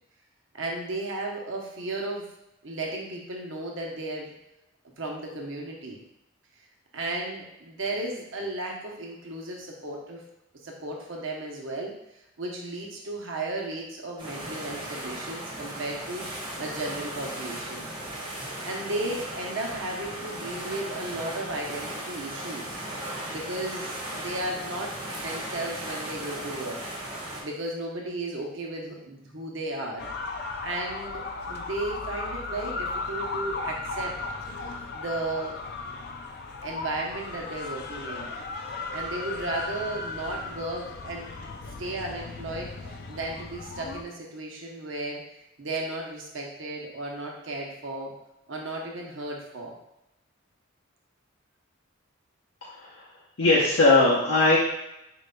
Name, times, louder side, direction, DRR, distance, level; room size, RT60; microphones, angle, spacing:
voice 1, 0.5-2.3 2.6-4.3 5.0-6.0 6.9-10.2 10.6-11.9 12.4-17.9 18.6-22.8 23.3-26.8 27.4-30.1 30.6-34.1 34.6-35.6 36.6-38.3 38.9-41.4 41.8-45.2 45.6-48.1 48.5-49.7, right 2 dB, 70° right, 0 dB, 0.8 m, -34 dB
sound 1, 14.2-27.4, right 1 dB, 25° right, 0.9 m, -36 dB
sound 2, 30.0-44.0, left 3 dB, 50° left, 0.4 m, -36 dB
voice 2, 52.7-53.0 53.4-54.6, left 2 dB, 75° left, -6 dB, 0.7 m, -20 dB
4.5 x 3.8 x 2.2 m, 0.87 s
head